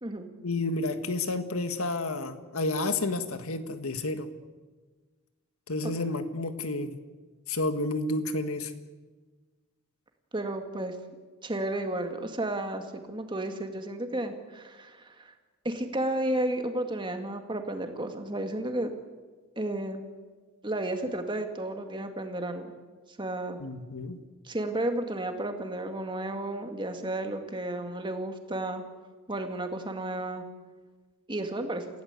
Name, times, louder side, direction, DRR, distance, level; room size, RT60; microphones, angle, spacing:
voice 1, 0.4-4.3 5.7-6.9 7.5-8.7 23.6-24.2, left 2 dB, 80° left, 9 dB, 1.8 m, -30 dB
voice 2, 10.3-11.0 11.4-15.3 15.6-18.9 19.6-20.0 20.6-22.7 23.2-23.6 24.4-28.8 29.3-30.4 31.3-31.9, right 1 dB, 20° right, 5 dB, 2.1 m, -32 dB
28.5 x 16.5 x 8.3 m, 1.4 s
head